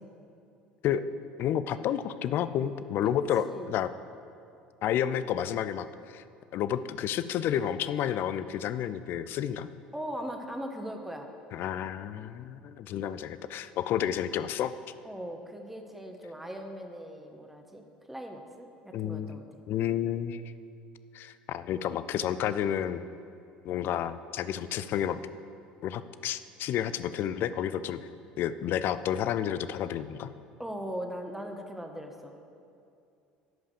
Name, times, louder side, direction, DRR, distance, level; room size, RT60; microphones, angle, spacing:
voice 1, 1.4-3.9 4.8-6.2 6.5-9.7 11.5-14.7 18.9-19.4 19.7-20.4 21.1-23.0 23.6-25.2 25.8-28.0 28.4-30.3, left 10 dB, 50° left, 13 dB, 0.4 m, -30 dB
voice 2, 9.9-11.3 15.0-19.4 30.6-32.3, equal, 5° right, 4 dB, 1.3 m, -39 dB
11.0 x 5.6 x 6.9 m, 2.6 s
figure-of-eight pair, 65°, 5 cm